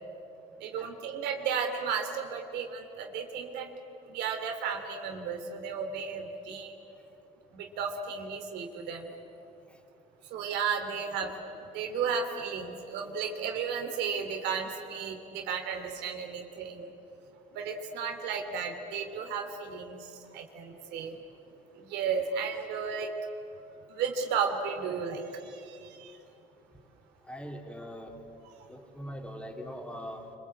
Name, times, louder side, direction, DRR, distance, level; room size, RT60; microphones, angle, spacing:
voice 1, 0.6-3.7 4.1-6.7 7.5-9.1 10.3-16.9 17.5-21.1 21.7-23.1 23.9-26.1, right 6 dB, 90° right, 4 dB, 2.9 m, -34 dB
voice 2, 27.3-28.2 28.7-30.3, equal, 5° left, 3 dB, 3.4 m, -41 dB
26.0 x 25.5 x 8.7 m, 2.7 s
cardioid pair, 110°, 17 cm